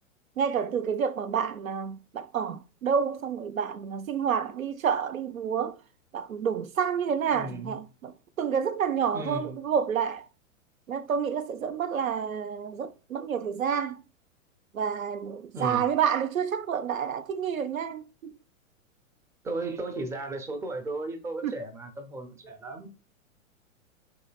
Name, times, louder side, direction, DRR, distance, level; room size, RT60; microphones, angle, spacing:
voice 1, 0.4-5.8 6.1-8.1 8.4-10.3 10.9-14.0 14.7-18.3 21.4-21.5, right 7 dB, 85° right, 0.6 m, -29 dB
voice 2, 7.3-7.8 9.1-9.6 15.5-15.8 19.4-22.9, right 2 dB, 5° right, 0.4 m, -35 dB
6.8 x 2.7 x 2.3 m
figure-of-eight pair, 100°, 40 cm